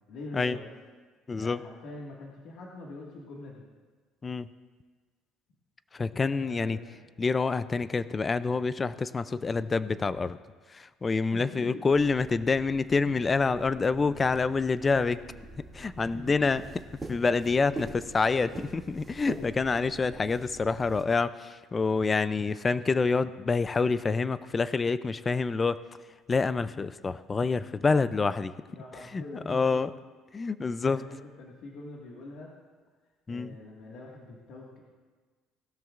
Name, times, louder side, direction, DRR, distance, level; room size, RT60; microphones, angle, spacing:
voice 1, 0.1-0.7 1.3-3.6 6.2-7.0 11.3-12.0 16.1-16.6 28.7-29.8 30.8-32.5 33.3-34.8, left 2 dB, 65° left, -3 dB, 1.8 m, -44 dB
voice 2, 1.3-1.6 4.2-4.5 5.9-6.8 7.2-10.4 10.7-15.2 15.7-16.6 17.1-25.8 26.3-28.5 29.1-29.9 30.3-31.0 33.3-33.6, left 4 dB, 20° left, 14 dB, 0.4 m, -27 dB
sound 1, 11.8-21.0, right 2 dB, 15° right, 2.2 m, -45 dB
20.0 x 13.0 x 2.5 m, 1.4 s
cardioid pair, 130°, 0 cm